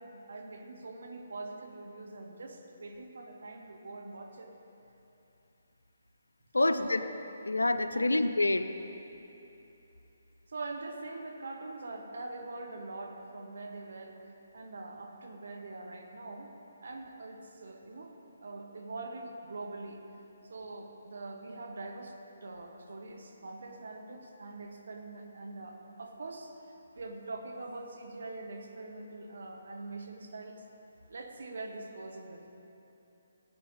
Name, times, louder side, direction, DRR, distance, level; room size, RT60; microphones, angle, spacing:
voice 1, 0.0-4.5 6.5-7.1 7.9-8.1 10.5-16.5 16.8-18.1 18.4-20.0 20.5-22.1 22.4-26.5 26.9-30.6 31.1-32.5, right 2 dB, 65° right, 3 dB, 1.4 m, -43 dB
voice 2, 6.5-7.0 7.5-8.7, left 2 dB, 85° left, 10 dB, 0.6 m, -27 dB
16.5 x 9.0 x 4.0 m, 2.9 s
figure-of-eight pair, 145°, 0 cm